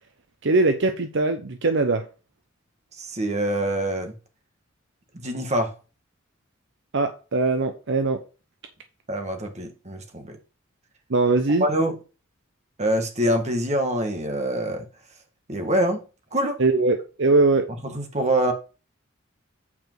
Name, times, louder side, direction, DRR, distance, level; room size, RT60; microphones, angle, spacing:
voice 1, 0.4-2.0 6.9-8.2 11.1-11.7 16.6-17.7, right 3 dB, 60° right, 0.8 m, -21 dB
voice 2, 3.0-4.1 5.1-5.7 9.1-10.4 11.6-11.9 12.8-14.8 15.5-16.0 16.3-16.6 17.8-18.5, right 1 dB, 35° right, 1.7 m, -25 dB
8.6 x 5.0 x 4.6 m
head